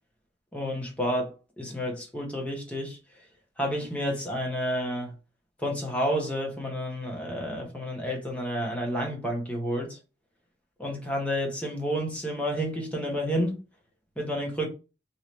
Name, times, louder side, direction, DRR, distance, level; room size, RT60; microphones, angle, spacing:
voice 1, 0.5-3.0 3.6-5.1 5.6-10.0 10.8-13.6 14.2-14.7, equal, 5° left, 0.9 m, -30 dB
3.2 x 2.7 x 3.0 m
head